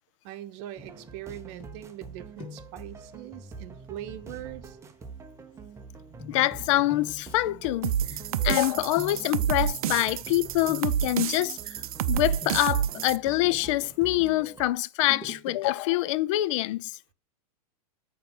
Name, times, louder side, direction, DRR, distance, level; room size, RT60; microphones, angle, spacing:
voice 1, 0.2-4.8, right 12 dB, 50° right, 0.9 m, -41 dB
sound 1, 0.8-14.8, right 5 dB, 15° right, 0.7 m, -45 dB
sound 2, 1.6-2.1 2.4-2.8 4.3-4.4 6.2-10.3 10.7-11.2 12.1-14.0 15.0-15.7 16.1-16.2, left 4 dB, 25° left, 2.1 m, -45 dB
voice 2, 6.3-7.9 8.4-11.8 12.1-17.0, left 17 dB, 50° left, 0.4 m, -25 dB
sound 3, 7.8-13.2, right 10 dB, 70° right, 0.5 m, -29 dB
8.6 x 3.2 x 5.4 m
hypercardioid pair, 125°, 20 cm